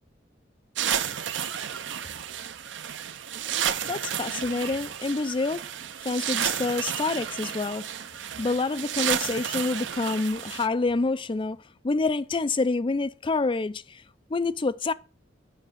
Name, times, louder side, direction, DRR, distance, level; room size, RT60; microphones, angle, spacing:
sound 1, 0.8-10.7, right 9 dB, 70° right, 0.6 m, -32 dB
voice 1, 3.8-5.6 6.0-7.9 8.4-14.0 14.3-14.9, left 3 dB, 25° left, 0.4 m, -27 dB
10.0 x 5.4 x 5.7 m
head